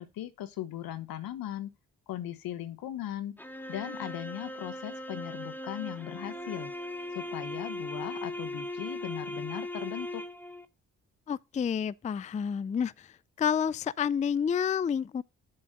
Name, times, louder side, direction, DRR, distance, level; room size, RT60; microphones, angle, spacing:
voice 1, 0.0-1.7 2.1-3.4 3.7-6.7 7.1-10.2, left 12 dB, 75° left, 1.0 m, -38 dB
sound 1, 3.4-10.6, left 1 dB, 5° left, 1.0 m, -39 dB
voice 2, 11.3-13.1 13.4-15.2, left 7 dB, 20° left, 0.4 m, -29 dB
7.6 x 3.9 x 6.4 m
hypercardioid pair, 45°, 35 cm